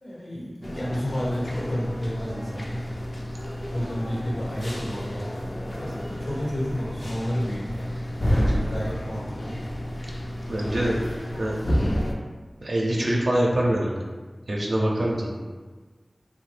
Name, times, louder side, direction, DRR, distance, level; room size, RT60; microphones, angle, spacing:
voice 1, 0.0-2.8 3.7-5.5 5.8-8.0 8.3-9.6, equal, 90° left, -6 dB, 1.0 m, -31 dB
sound 1, 0.6-12.1, equal, 60° left, 0.4 m, -30 dB
voice 2, 10.5-11.0 11.4-11.5 12.6-14.0 14.5-15.4, right 1 dB, 85° right, -3 dB, 0.4 m, -24 dB
2.9 x 2.1 x 3.1 m, 1.4 s
wide cardioid pair, 40°, 0 cm